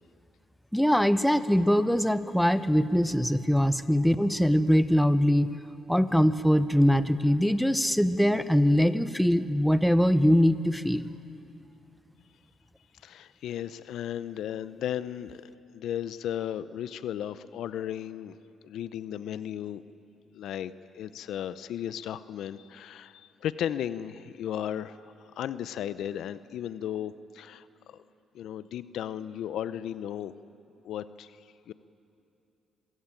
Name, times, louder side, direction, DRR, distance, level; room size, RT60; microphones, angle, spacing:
voice 1, 0.7-5.6 5.9-11.0, equal, ahead, 13 dB, 0.8 m, -22 dB
voice 2, 13.0-15.4 15.7-18.4 18.6-19.8 20.3-28.0 28.3-30.3 30.8-31.4 31.7-31.8, left 10 dB, 75° left, 15 dB, 0.6 m, -35 dB
26.5 x 15.5 x 9.0 m, 2.7 s
cardioid pair, 90°, 0 cm